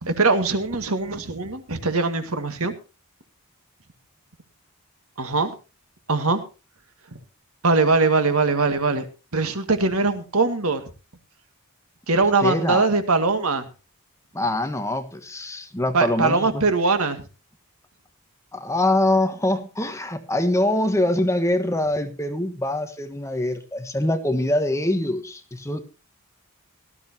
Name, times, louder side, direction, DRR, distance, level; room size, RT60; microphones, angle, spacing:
voice 1, 0.0-2.7 5.2-5.5 6.1-6.4 7.1-7.2 7.6-9.0 9.3-10.8 12.1-13.7 15.9-17.2, right 3 dB, 75° right, 8 dB, 1.9 m, -21 dB
voice 2, 12.4-12.9 14.3-16.6 18.5-25.8, left 1 dB, 15° left, 8 dB, 1.3 m, -24 dB
18.0 x 13.0 x 2.8 m, 0.32 s
head